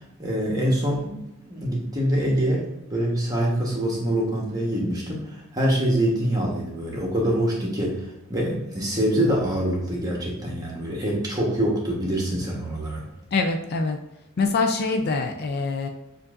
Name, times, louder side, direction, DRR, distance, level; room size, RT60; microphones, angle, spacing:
voice 1, 0.2-13.1, right 1 dB, 15° right, -3 dB, 1.1 m, -25 dB
voice 2, 13.3-14.0 14.4-15.9, left 3 dB, 45° left, 5 dB, 0.4 m, -24 dB
6.8 x 2.6 x 2.5 m, 0.90 s
head